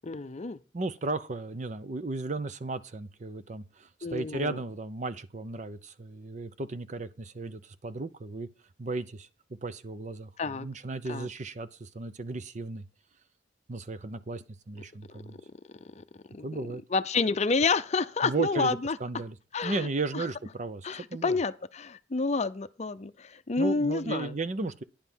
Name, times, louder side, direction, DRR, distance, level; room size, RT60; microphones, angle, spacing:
voice 1, 0.0-0.6 4.0-4.6 10.4-10.7 11.1-11.3 15.1-16.5 16.9-19.0 19.5-19.9 20.1-20.3 20.8-24.3, left 4 dB, 40° left, 0.6 m, -29 dB
voice 2, 0.7-8.5 8.8-9.3 9.6-12.8 13.7-15.4 16.4-16.8 18.2-19.3 19.6-21.4 23.6-24.8, right 3 dB, 40° right, 0.7 m, -35 dB
10.5 x 5.6 x 6.1 m
head